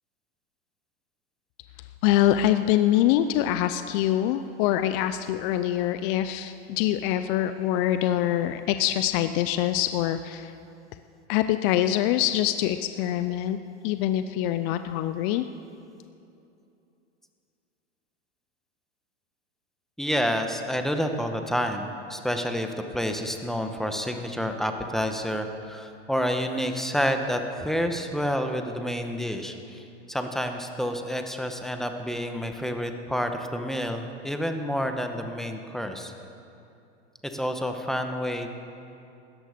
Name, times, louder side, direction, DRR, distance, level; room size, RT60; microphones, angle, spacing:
voice 1, 2.0-10.5 11.3-13.6 13.8-15.4, left 12 dB, 50° left, 10 dB, 0.6 m, -24 dB
voice 2, 20.0-36.1 37.2-38.5, equal, ahead, 5 dB, 1.2 m, -29 dB
16.5 x 13.5 x 5.2 m, 2.7 s
hypercardioid pair, 105°, 34 cm